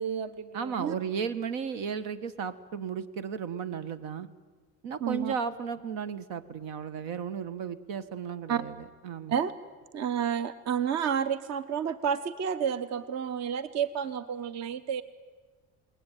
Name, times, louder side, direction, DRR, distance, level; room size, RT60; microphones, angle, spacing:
voice 1, 0.0-0.9 5.0-5.3 8.5-8.6 9.3-9.5 9.9-15.0, right 8 dB, 50° right, 14 dB, 1.1 m, -30 dB
voice 2, 0.5-4.3 4.8-9.4, right 6 dB, 80° right, 13 dB, 1.7 m, -34 dB
29.5 x 20.5 x 9.3 m, 1.4 s
cardioid pair, 145°, 34 cm